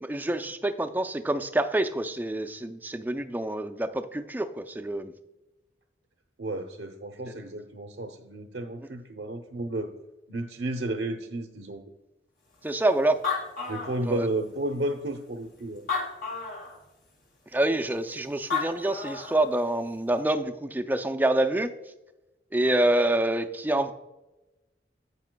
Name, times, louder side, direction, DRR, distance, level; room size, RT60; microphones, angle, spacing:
voice 1, 0.0-5.1 7.2-7.3 8.8-8.9 12.6-13.2 14.0-14.3 17.5-21.7 22.5-23.9, right 1 dB, 10° right, 8 dB, 0.4 m, -27 dB
voice 2, 6.4-9.9 10.3-11.8 13.7-15.8, right 2 dB, 90° right, 3 dB, 0.7 m, -32 dB
Animal, 12.8-12.9 13.1-14.5 15.1-15.2 15.8-16.8 18.2-18.3 18.5-19.5, left 5 dB, 55° left, 2.3 m, -31 dB
10.5 x 8.4 x 2.2 m, 1.0 s
head